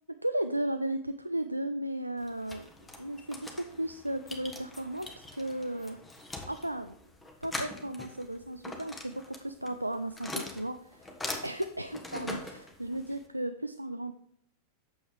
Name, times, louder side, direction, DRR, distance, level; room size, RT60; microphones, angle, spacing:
voice 1, 0.1-2.7 3.0-6.0 6.5-6.9 7.4-11.1 11.4-14.1, right 1 dB, 85° right, 9 dB, 0.3 m, -35 dB
sound 1, 2.2-13.3, left 2 dB, 10° left, 1.3 m, -43 dB
8.7 x 7.0 x 3.2 m, 0.71 s
figure-of-eight pair, 90°, 0 cm